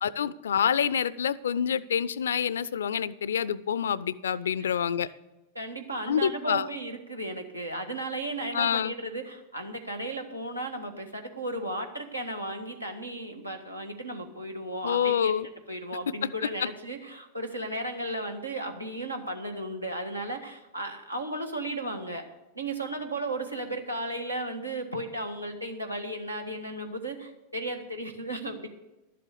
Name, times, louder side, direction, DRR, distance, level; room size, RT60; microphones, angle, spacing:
voice 1, 0.0-5.1 6.1-6.7 8.5-8.9 14.8-15.5, left 8 dB, 65° left, 20 dB, 0.4 m, -27 dB
voice 2, 5.5-15.3 15.7-22.2 22.5-28.7, right 1 dB, 85° right, 4 dB, 1.5 m, -35 dB
12.0 x 7.6 x 6.8 m, 1.0 s
figure-of-eight pair, 90°, 0 cm